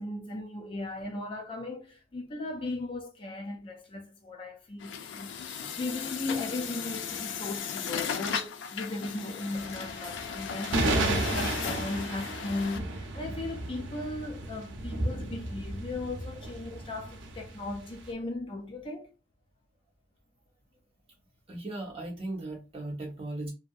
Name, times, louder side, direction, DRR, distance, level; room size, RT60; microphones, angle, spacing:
voice 1, 0.0-19.1, left 2 dB, 30° left, 0.4 m, -37 dB
Truck, 4.8-12.8, left 7 dB, 85° left, 0.5 m, -36 dB
sound 1, 9.5-18.1, right 2 dB, 85° right, 0.6 m, -33 dB
voice 2, 21.5-23.5, right 2 dB, 30° right, 1.1 m, -37 dB
2.7 x 2.6 x 2.3 m
head